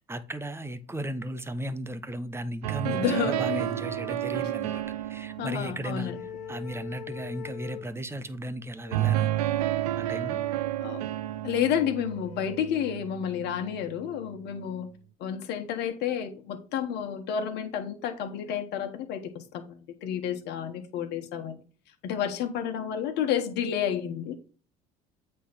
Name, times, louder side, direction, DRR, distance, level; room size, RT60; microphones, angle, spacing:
voice 1, 0.0-6.1 6.5-9.3 10.0-10.4, right 1 dB, 15° right, 1.1 m, -36 dB
sound 1, 2.6-6.8 8.9-13.9, right 14 dB, 90° right, 0.5 m, -31 dB
voice 2, 2.8-3.6 5.4-6.2 10.8-11.0 11.4-14.9 15.2-21.6 22.0-24.4, left 9 dB, 65° left, 1.5 m, -30 dB
sound 2, 3.4-5.5 5.9-7.9 8.8-10.7 11.7-13.0, left 7 dB, 85° left, 1.5 m, -45 dB
8.3 x 3.3 x 5.9 m
hypercardioid pair, 75°, 19 cm